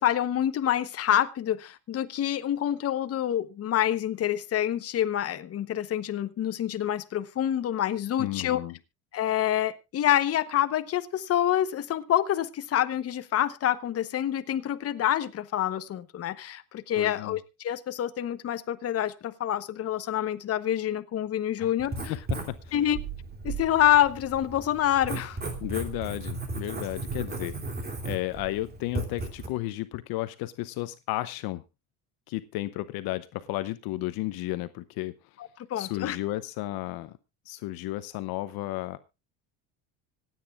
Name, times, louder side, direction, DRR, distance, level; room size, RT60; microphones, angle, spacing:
voice 1, 0.0-8.6 9.1-22.1 22.7-23.0 23.4-25.4 35.7-36.2, left 11 dB, 35° left, 1.0 m, -27 dB
voice 2, 8.2-8.8 17.0-17.4 21.6-21.7 22.1-22.7 25.6-27.5 28.0-31.6 32.3-35.1 35.8-37.1 37.5-39.0, left 17 dB, 60° left, 0.8 m, -33 dB
Writing, 21.8-29.5, right 3 dB, 25° right, 2.8 m, -36 dB
25.5 x 9.2 x 2.4 m
cardioid pair, 135°, 41 cm